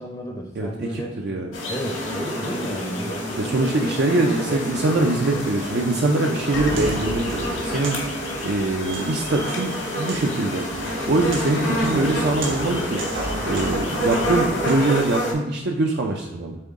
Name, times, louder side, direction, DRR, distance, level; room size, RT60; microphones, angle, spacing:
voice 1, 0.0-1.1 1.7-3.7, equal, 20° left, 1 dB, 0.6 m, -32 dB
voice 2, 0.6-1.5 3.4-8.0 8.4-10.6 11.1-13.0 13.4-16.6, right 2 dB, 55° right, 1 dB, 0.5 m, -23 dB
sound 1, 1.5-15.3, equal, 90° left, 1.6 m, -28 dB
sound 2, 4.8-9.9, left 4 dB, 60° left, 0.8 m, -42 dB
Walk footsteps, 6.4-15.2, right 1 dB, 75° right, 1.3 m, -33 dB
7.7 x 3.7 x 3.6 m, 0.99 s
head